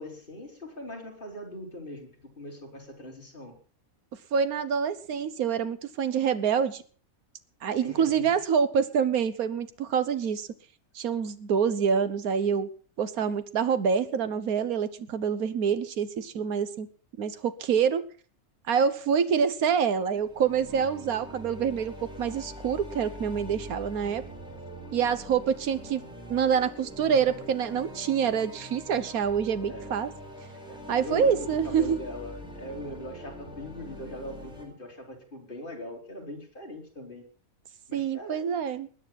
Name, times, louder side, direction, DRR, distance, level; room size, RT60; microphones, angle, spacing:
voice 1, 0.0-2.1 2.4-3.6 7.8-8.3 24.5-24.6 27.1-27.3 29.7-29.9 30.7-37.2 37.9-38.5, left 1 dB, 35° left, 1 dB, 3.8 m, -41 dB
voice 2, 4.3-6.8 7.6-10.5 10.9-12.7 13.0-16.9 17.2-18.1 18.7-24.2 24.9-26.0 26.3-30.1 30.9-32.0 37.9-38.9, right 7 dB, 85° right, 13 dB, 1.5 m, -26 dB
sound 1, 20.1-34.7, equal, 5° right, 4.5 m, -43 dB
20.5 x 9.1 x 5.8 m, 0.42 s
omnidirectional pair, 1.5 m